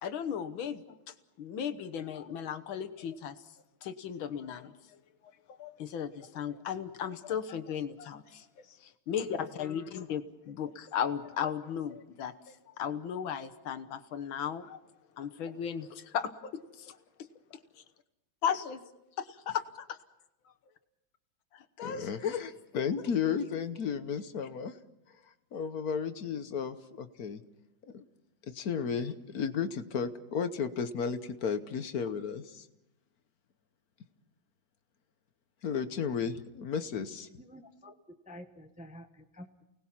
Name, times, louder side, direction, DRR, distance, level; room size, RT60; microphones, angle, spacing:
voice 1, 0.0-3.4 3.8-5.0 5.6-8.2 9.1-14.8 15.1-17.0 17.5-17.8 18.4-18.8 19.2-20.0 21.5-22.4, left 8 dB, 75° left, 9 dB, 1.9 m, -36 dB
voice 2, 21.8-24.8 25.5-27.4 27.9-28.1 28.5-32.7 35.6-37.3, left 6 dB, 55° left, 10 dB, 1.3 m, -34 dB
voice 3, 37.4-37.9 38.3-39.7, equal, 5° right, 5 dB, 0.8 m, -49 dB
29.0 x 19.0 x 5.8 m, 0.91 s
omnidirectional pair, 2.2 m